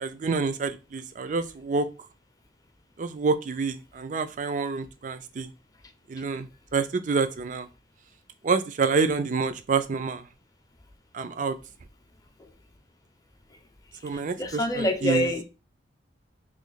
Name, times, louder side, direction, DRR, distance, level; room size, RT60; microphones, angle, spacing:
voice 1, 0.0-1.9 3.0-5.5 6.1-7.7 8.4-10.2 11.1-11.6 14.0-15.3, right 4 dB, 40° right, 0.4 m, -27 dB
voice 2, 14.1-15.4, equal, 20° left, 0.6 m, -26 dB
3.1 x 2.8 x 3.9 m
head